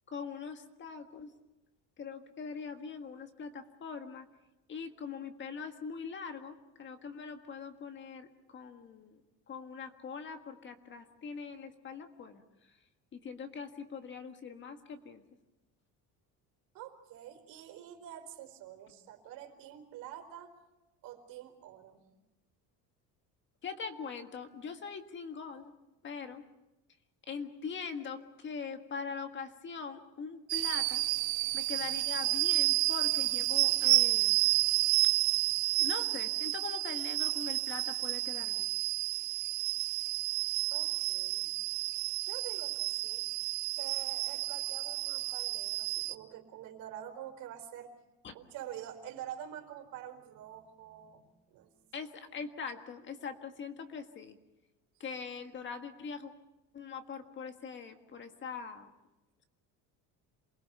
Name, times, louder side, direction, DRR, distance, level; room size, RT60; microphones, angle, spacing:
voice 1, 0.1-1.3 2.0-4.3 4.7-9.2 9.5-12.4 13.1-15.2 23.6-25.7 26.0-26.4 27.3-31.0 31.5-34.4 35.8-38.8 48.2-48.4 51.9-54.4 55.0-56.3 56.7-58.9, left 5 dB, 30° left, 6 dB, 1.7 m, -42 dB
voice 2, 16.7-20.5 21.0-22.0 40.7-41.5 42.3-43.3 43.7-47.9 48.3-51.7, right 10 dB, 65° right, 5 dB, 4.6 m, -47 dB
sound 1, 30.5-46.1, right 20 dB, 85° right, 0.9 m, -30 dB
28.0 x 20.5 x 6.9 m, 1.0 s
cardioid pair, 160°, 36 cm